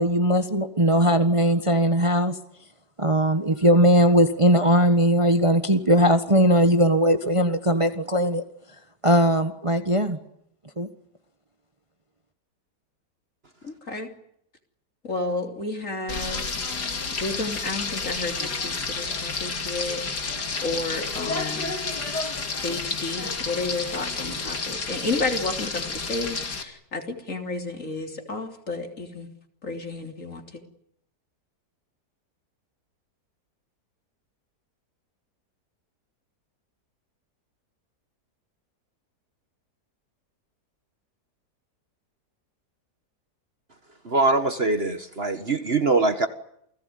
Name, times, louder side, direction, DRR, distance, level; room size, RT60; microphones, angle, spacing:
voice 1, 0.0-2.4 3.0-8.4 9.0-10.2 10.8-10.9, equal, 20° right, 8 dB, 1.5 m, -19 dB
voice 2, 13.6-14.1 15.0-16.4 17.2-20.3 20.6-21.8 22.6-29.3 29.6-30.6, left 3 dB, 50° left, 5 dB, 3.8 m, -31 dB
Frying (food), 16.1-26.6, left 4 dB, 75° left, 3.3 m, -30 dB
voice 3, 44.0-46.3, right 3 dB, 40° right, 9 dB, 1.8 m, -22 dB
29.0 x 19.0 x 9.6 m, 0.73 s
omnidirectional pair, 1.8 m